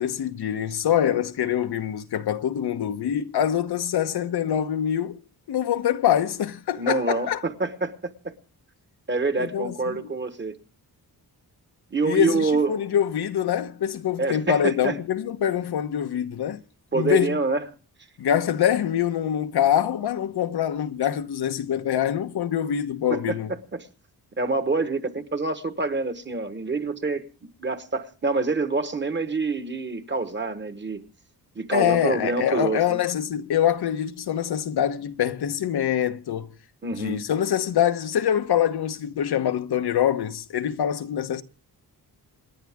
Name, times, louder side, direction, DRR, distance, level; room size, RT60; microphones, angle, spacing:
voice 1, 0.0-5.2 5.5-7.4 9.4-10.0 12.0-16.6 16.9-17.4 18.2-23.5 31.7-36.5 37.0-41.4, left 10 dB, 90° left, 1.1 m, -24 dB
voice 2, 6.8-8.3 9.1-10.6 11.9-12.8 14.2-15.0 16.9-17.6 23.1-23.9 24.4-27.3 27.6-31.1 31.5-33.0 36.8-37.2, right 3 dB, 30° right, 1.3 m, -26 dB
28.0 x 10.5 x 3.6 m
wide cardioid pair, 140°, 38 cm